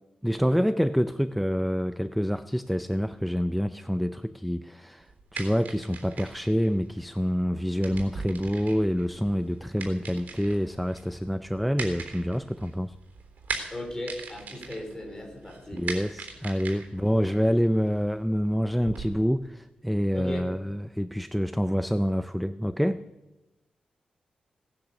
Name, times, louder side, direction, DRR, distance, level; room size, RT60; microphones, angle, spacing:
voice 1, 0.2-13.0 15.7-23.1, equal, ahead, 12 dB, 0.4 m, -27 dB
sound 1, 5.0-19.1, right 4 dB, 80° right, 3.6 m, -41 dB
voice 2, 13.7-15.8 16.9-17.3 20.1-20.5, left 1 dB, 20° left, 2 dB, 4.4 m, -37 dB
18.0 x 10.5 x 7.1 m, 1.0 s
wide cardioid pair, 120°, 3 cm